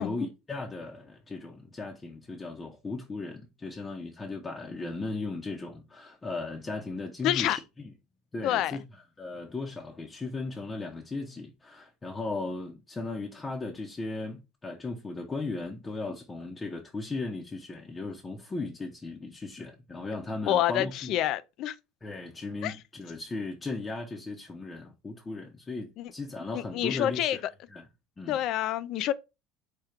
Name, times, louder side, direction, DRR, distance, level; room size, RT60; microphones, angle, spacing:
voice 1, 0.0-7.9 8.3-8.8 9.2-21.2 22.0-27.4 27.7-27.9 28.2-28.4, left 3 dB, 20° left, 0.7 m, -37 dB
voice 2, 7.2-7.6 8.4-8.8 20.5-21.7 22.6-22.8 26.0-26.1 26.7-27.4 28.3-29.1, left 12 dB, 55° left, 0.4 m, -27 dB
5.0 x 2.3 x 4.4 m
supercardioid pair, 115°, 0 cm